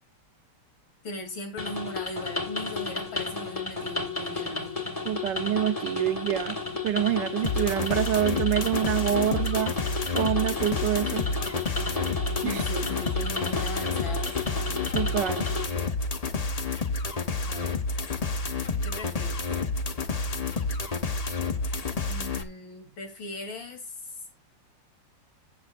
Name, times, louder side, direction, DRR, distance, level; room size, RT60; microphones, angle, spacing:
voice 1, 1.0-4.8 12.4-14.3 17.5-17.8 18.8-19.4 22.1-24.1, left 1 dB, 90° left, 3.7 m, -38 dB
sound 1, 1.6-15.6, left 4 dB, 20° left, 1.8 m, -33 dB
voice 2, 5.0-6.6 6.8-9.7 10.1-11.2 12.4-12.6 14.9-15.5, right 11 dB, 70° right, 1.4 m, -26 dB
sound 2, 7.4-22.4, left 3 dB, 45° left, 0.4 m, -29 dB
14.0 x 8.7 x 2.5 m
omnidirectional pair, 2.0 m